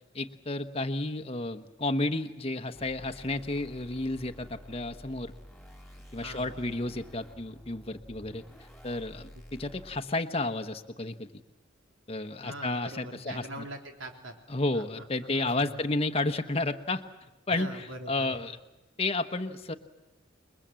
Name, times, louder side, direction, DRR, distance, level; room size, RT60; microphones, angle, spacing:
voice 1, 0.1-5.3 6.1-8.4 8.8-11.3 12.1-13.5 14.5-17.0 17.5-17.7 18.1-18.6 19.0-19.7, left 2 dB, 30° left, 8 dB, 1.1 m, -31 dB
sound 1, 2.7-10.0, equal, ahead, 2.9 m, -50 dB
voice 2, 6.2-7.0 12.4-14.3 14.7-15.8 17.5-18.4, right 1 dB, 85° right, 4 dB, 3.5 m, -43 dB
28.5 x 22.0 x 7.6 m, 1.0 s
head